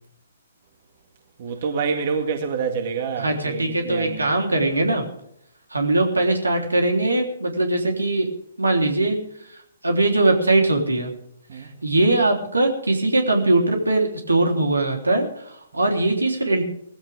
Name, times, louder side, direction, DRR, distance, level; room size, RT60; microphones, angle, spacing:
voice 1, 1.4-4.3 11.5-11.7, right 5 dB, 50° right, 2.0 m, -27 dB
voice 2, 3.2-5.1 5.7-8.3 8.6-9.2 9.8-11.1 11.8-16.6, right 2 dB, 90° right, 3.5 m, -21 dB
18.0 x 15.5 x 3.6 m
figure-of-eight pair, 130°, 0 cm